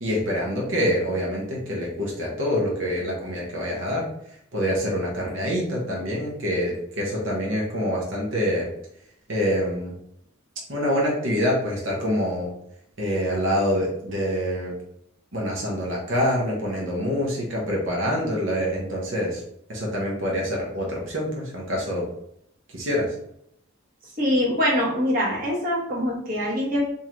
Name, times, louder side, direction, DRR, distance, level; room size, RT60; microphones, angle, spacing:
voice 1, 0.0-4.1 4.5-8.7 9.3-9.9 10.7-12.5 13.0-14.7 15.3-19.4 19.7-22.1 22.7-23.1, equal, 75° right, -3 dB, 1.0 m, -26 dB
voice 2, 24.2-26.8, equal, 45° right, -5 dB, 1.1 m, -23 dB
3.8 x 2.7 x 2.9 m, 0.75 s
head